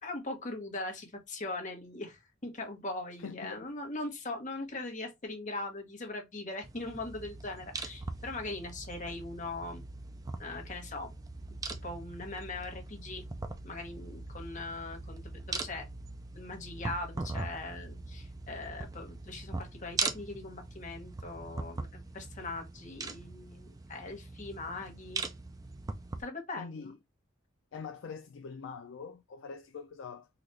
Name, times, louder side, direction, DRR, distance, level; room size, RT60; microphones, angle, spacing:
voice 1, 0.0-9.8 10.4-11.1 11.7-13.2 13.6-15.8 16.3-21.9 22.1-25.2 26.2-26.9, left 2 dB, 40° left, 1.1 m, -40 dB
voice 2, 3.2-3.7 26.6-27.0 27.7-30.3, left 5 dB, 65° left, 0.4 m, -44 dB
sound 1, 6.6-26.2, right 3 dB, 20° right, 0.3 m, -41 dB
3.9 x 2.4 x 3.1 m
head